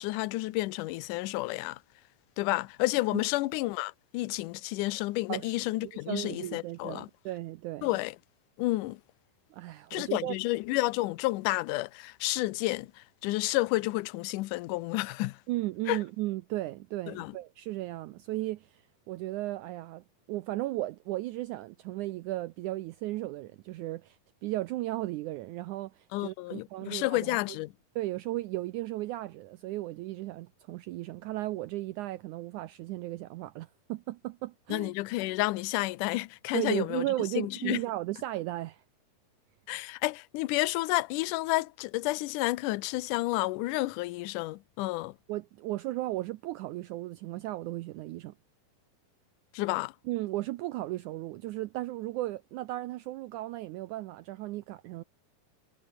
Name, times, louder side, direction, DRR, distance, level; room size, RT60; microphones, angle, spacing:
voice 1, 0.0-1.8 2.4-7.1 7.8-8.1 8.6-9.0 9.9-12.9 13.2-15.4 15.9-16.0 17.1-17.3 26.1-27.7 34.7-37.0 37.4-37.8 39.7-45.1 49.5-49.9, left 19 dB, 75° left, 2.0 m, -30 dB
voice 2, 5.8-7.9 9.5-10.4 15.5-27.4 27.9-34.9 36.5-38.8 45.3-48.3 50.0-55.0, right 17 dB, 80° right, 1.8 m, -35 dB
omnidirectional pair, 4.1 m